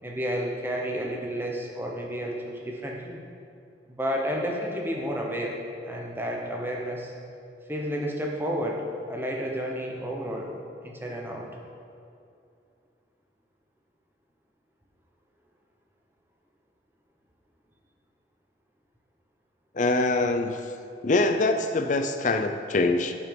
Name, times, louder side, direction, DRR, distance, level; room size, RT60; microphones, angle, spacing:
voice 1, 0.0-3.2 3.9-7.1 7.7-10.5 10.8-11.5, equal, 15° right, -1 dB, 1.0 m, -31 dB
voice 2, 19.7-20.6 21.0-23.1, left 2 dB, 45° left, 7 dB, 0.6 m, -24 dB
11.0 x 5.3 x 5.2 m, 2.5 s
head